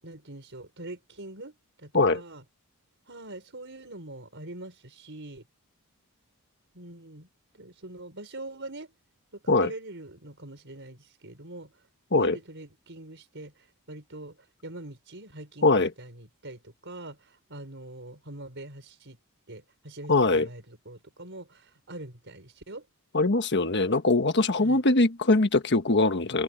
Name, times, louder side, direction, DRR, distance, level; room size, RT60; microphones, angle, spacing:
voice 1, 0.0-2.4 3.1-5.5 6.7-7.3 7.5-8.9 9.3-11.7 12.1-19.2 19.5-22.9 24.6-24.8, right 2 dB, 55° right, 5.8 m, -43 dB
voice 2, 20.1-20.5 23.1-26.4, left 2 dB, 50° left, 1.4 m, -22 dB
head